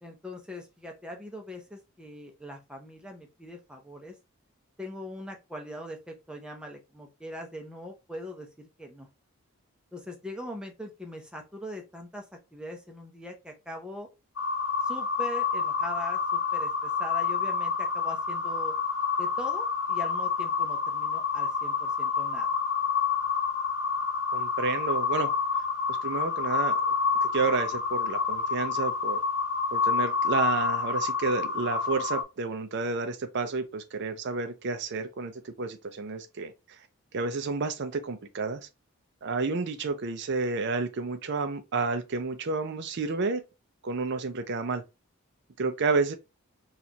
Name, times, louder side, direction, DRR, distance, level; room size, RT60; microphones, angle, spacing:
voice 1, 0.0-4.1 4.8-9.1 9.9-12.2 12.5-14.1 14.8-18.7 19.2-22.5, left 1 dB, 5° right, 0.6 m, -41 dB
sound 1, 14.4-32.2, left 5 dB, 60° left, 1.0 m, -28 dB
voice 2, 24.3-25.3 26.0-26.9 27.2-29.2 29.7-36.5 37.1-38.7 39.2-43.4 43.8-44.8 45.6-46.1, right 4 dB, 50° right, 0.5 m, -30 dB
4.2 x 2.4 x 2.8 m
head